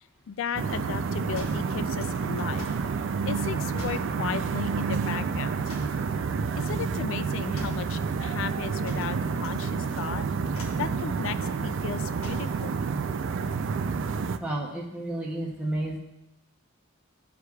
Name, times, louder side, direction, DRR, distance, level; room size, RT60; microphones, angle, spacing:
voice 1, 0.3-2.7 3.3-5.7 6.6-10.3 10.8-12.7, left 8 dB, 65° left, 13 dB, 0.3 m, -35 dB
sound 1, 0.5-14.4, right 5 dB, 65° right, 0.4 m, -29 dB
sound 2, 1.3-2.9 3.7-4.1 5.7-6.1 7.5-7.9 8.8-9.6 9.9-10.2 10.5-10.9 12.2-12.6, left 1 dB, 80° left, 1.3 m, -44 dB
voice 2, 14.4-16.0, right 1 dB, 5° right, -4 dB, 0.7 m, -31 dB
13.5 x 4.8 x 2.3 m, 0.90 s
head